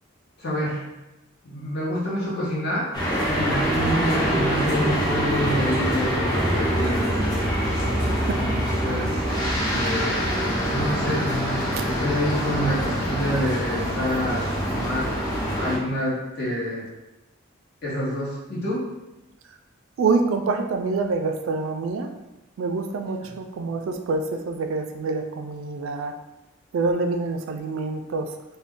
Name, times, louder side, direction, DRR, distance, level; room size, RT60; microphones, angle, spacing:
voice 1, 0.4-0.8 1.4-2.9 3.3-7.2 8.4-8.5 8.8-9.3 9.7-10.4 10.7-15.1 15.6-16.8 17.8-18.9 23.2-23.3, equal, 55° left, -6 dB, 1.0 m, -28 dB
sound 1, 2.9-15.8, equal, 20° left, 0.6 m, -24 dB
voice 2, 20.0-22.1 22.6-26.1 26.7-28.3, right 3 dB, 70° right, 6 dB, 0.3 m, -26 dB
2.5 x 2.2 x 3.6 m, 0.99 s
head